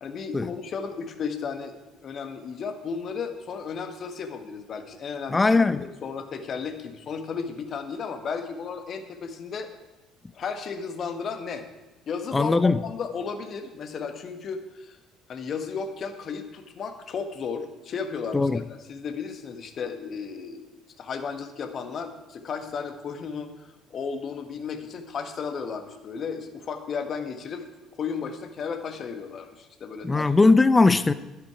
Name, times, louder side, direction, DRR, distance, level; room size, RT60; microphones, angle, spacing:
voice 1, 0.0-1.7 2.0-9.7 10.3-11.6 12.1-15.0 15.3-18.5 18.9-20.7 21.0-27.7 28.0-30.3, left 5 dB, 45° left, 1.4 m, -34 dB
voice 2, 5.3-5.8 12.3-12.8 18.3-18.6 30.0-31.1, left 3 dB, 20° left, 0.6 m, -19 dB
12.0 x 10.5 x 4.8 m
hypercardioid pair, 55°, 0 cm